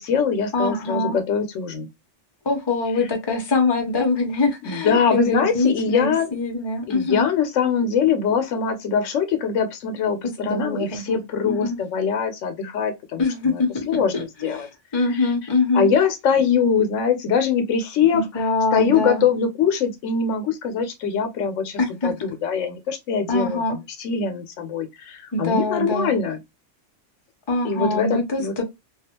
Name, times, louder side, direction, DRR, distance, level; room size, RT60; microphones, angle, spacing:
voice 1, 0.0-1.9 4.6-6.3 6.9-14.1 14.4-14.7 15.1-15.3 15.7-26.4 27.6-28.6, left 6 dB, 80° left, 1.0 m, -23 dB
voice 2, 0.5-1.2 2.4-7.3 10.2-11.2 11.4-11.8 13.2-15.9 18.1-19.3 21.8-22.1 23.3-23.8 25.3-26.1 27.5-28.6, left 3 dB, 30° left, 0.5 m, -24 dB
2.4 x 2.3 x 2.8 m
omnidirectional pair, 1.3 m